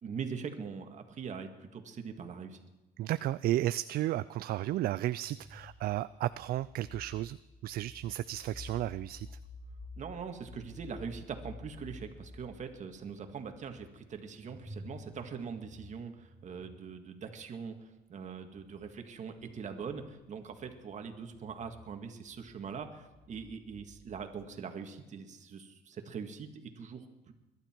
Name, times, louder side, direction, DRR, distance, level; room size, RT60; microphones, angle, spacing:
voice 1, 0.0-2.6 10.0-27.3, right 6 dB, 45° right, 6 dB, 2.0 m, -42 dB
voice 2, 3.0-7.4 7.6-9.4, right 14 dB, 65° right, 15 dB, 0.4 m, -33 dB
sound 1, 5.2-17.4 18.4-24.4, left 2 dB, 10° right, 2.8 m, -52 dB
22.0 x 12.0 x 4.6 m, 1.1 s
cardioid pair, 110°, 17 cm